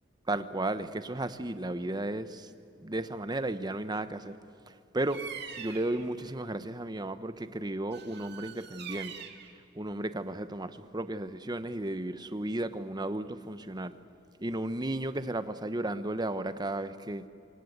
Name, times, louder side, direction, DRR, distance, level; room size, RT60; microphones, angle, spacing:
voice 1, 0.3-2.5 2.8-4.3 4.9-5.2 5.6-9.1 9.7-13.9 14.4-17.2, right 1 dB, 20° right, 11 dB, 1.0 m, -34 dB
Bird vocalization bird call bird song, 5.1-6.0 7.9-9.5, right 7 dB, 60° right, 2.1 m, -43 dB
25.5 x 25.0 x 8.1 m, 2.7 s
head